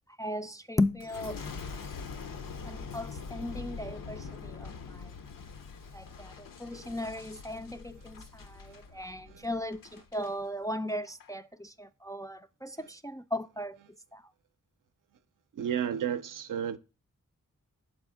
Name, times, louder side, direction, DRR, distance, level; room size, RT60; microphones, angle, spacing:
voice 1, 0.2-1.4 2.6-5.1 5.9-13.8 14.1-14.2, left 1 dB, 10° left, 0.3 m, -36 dB
Boom, 1.0-10.3 10.9-11.3, left 5 dB, 75° left, 0.6 m, -43 dB
voice 2, 15.6-16.8, right 9 dB, 70° right, 0.5 m, -32 dB
6.3 x 4.2 x 3.6 m
cardioid pair, 45°, 34 cm